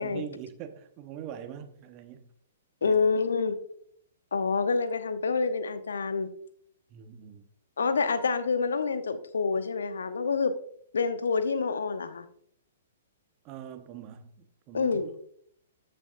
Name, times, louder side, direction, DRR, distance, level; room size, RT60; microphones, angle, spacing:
voice 1, 0.0-2.3 2.8-3.0 6.9-7.5 13.4-15.2, right 9 dB, 30° right, 1.2 m, -43 dB
voice 2, 2.8-3.6 4.3-6.3 7.8-10.6 10.9-12.2 14.7-15.1, left 4 dB, 65° left, 0.9 m, -27 dB
14.0 x 9.1 x 2.6 m
figure-of-eight pair, 115°, 0 cm